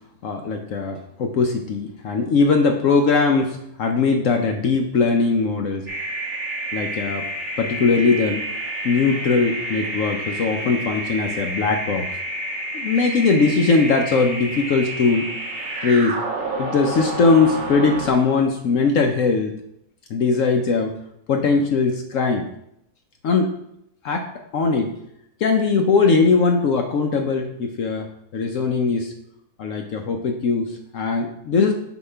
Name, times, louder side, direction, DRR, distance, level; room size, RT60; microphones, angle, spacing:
voice 1, 0.2-5.9 6.7-7.2 7.6-8.4 8.8-12.1 12.7-15.3 15.8-16.2 16.6-19.5 20.1-20.9 21.3-22.5 23.2-23.6 24.0-25.0 25.4-28.1 28.3-29.1 29.6-31.7, left 4 dB, 65° left, 4 dB, 0.9 m, -20 dB
sound 1, 5.9-18.1, right 1 dB, 60° right, 2.1 m, -29 dB
8.2 x 2.9 x 5.6 m, 0.77 s
omnidirectional pair, 1.6 m